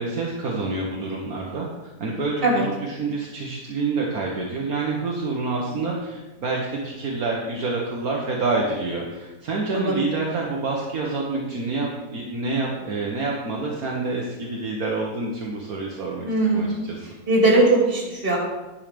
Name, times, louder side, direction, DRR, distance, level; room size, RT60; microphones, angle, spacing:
voice 1, 0.0-16.3 16.5-17.1, right 3 dB, 65° right, -3 dB, 1.6 m, -27 dB
voice 2, 16.2-16.9 17.3-18.4, right 2 dB, 35° right, -3 dB, 2.7 m, -20 dB
10.5 x 5.7 x 5.1 m, 1.1 s
omnidirectional pair, 1.7 m